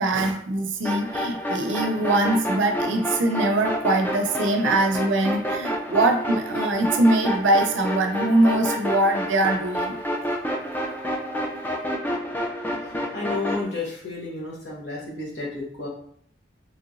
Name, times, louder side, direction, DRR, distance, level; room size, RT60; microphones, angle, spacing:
voice 1, 0.0-10.0, right 2 dB, 85° right, 4 dB, 0.5 m, -22 dB
sound 1, 0.8-13.6, equal, 10° left, 0.3 m, -29 dB
voice 2, 13.1-15.9, left 3 dB, 65° left, -4 dB, 1.1 m, -31 dB
3.1 x 2.9 x 2.5 m, 0.63 s
head